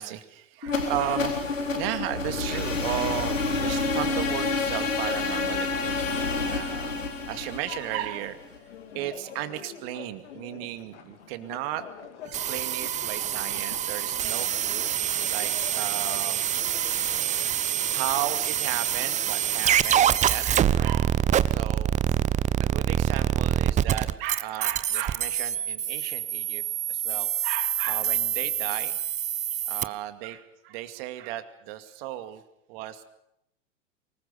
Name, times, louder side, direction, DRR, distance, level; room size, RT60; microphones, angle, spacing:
voice 1, 0.0-1.3 1.7-8.4 8.9-11.8 12.2-14.9 15.2-16.4 17.2-17.6 17.9-21.1 21.5-21.9 22.6-26.6 26.9-29.0 29.6-32.4 32.7-33.0, right 13 dB, 50° right, 9 dB, 2.4 m, -35 dB
sound 1, 0.6-8.6, left 3 dB, 85° left, 3.9 m, -28 dB
sound 2, 7.7-20.7, left 7 dB, 65° left, 3.0 m, -47 dB
sound 3, 12.3-29.8, right 10 dB, 20° right, 0.8 m, -26 dB
24.0 x 20.5 x 7.0 m, 0.80 s
figure-of-eight pair, 95°, 37 cm